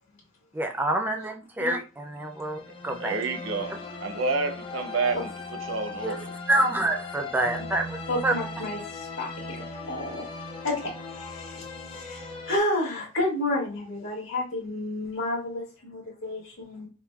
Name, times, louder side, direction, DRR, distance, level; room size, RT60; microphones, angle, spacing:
voice 1, 0.5-3.2 6.0-6.2 6.5-8.0 8.2-8.3, right 1 dB, 10° right, 0.4 m, -27 dB
sound 1, 2.2-12.6, left 3 dB, 25° left, 0.7 m, -38 dB
voice 2, 2.7-5.3 5.6-6.4, right 4 dB, 85° right, 0.7 m, -30 dB
voice 3, 8.1-9.6 9.9-10.2 10.6-16.9, left 1 dB, 70° left, 1.8 m, -31 dB
5.6 x 2.2 x 2.3 m
head